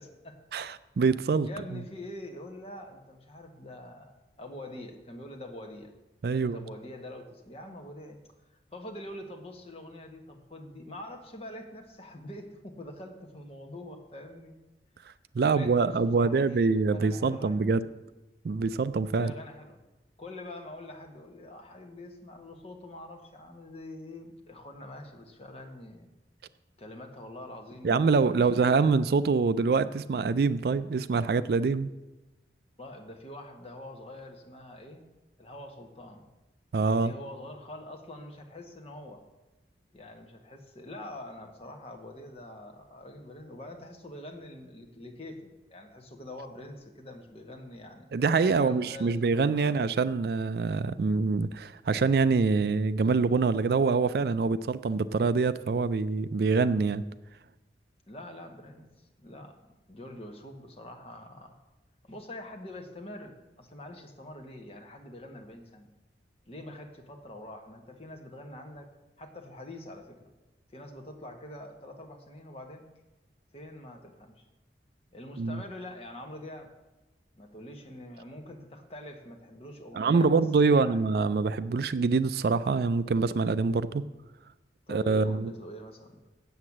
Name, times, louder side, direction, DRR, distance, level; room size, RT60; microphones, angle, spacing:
voice 1, 0.0-0.4 1.5-5.9 6.3-8.2 8.7-14.5 15.4-17.6 19.2-19.8 20.2-26.1 26.8-29.0 32.8-35.0 35.4-36.2 36.9-39.2 39.9-48.1 48.4-49.9 58.1-61.6 62.0-65.9 66.5-68.9 69.2-70.3 70.7-72.8 73.5-74.4 75.1-76.7 77.3-80.4 80.7-81.1 84.9-86.2, left 1 dB, 35° left, 3 dB, 1.3 m, -45 dB
voice 2, 0.5-1.8 6.2-6.6 15.3-17.9 18.4-19.3 27.8-31.9 36.7-37.1 48.1-57.0 75.4-75.6 79.9-84.0 84.9-85.5, right 4 dB, 55° right, 15 dB, 0.4 m, -25 dB
8.1 x 7.7 x 7.2 m, 1.1 s
head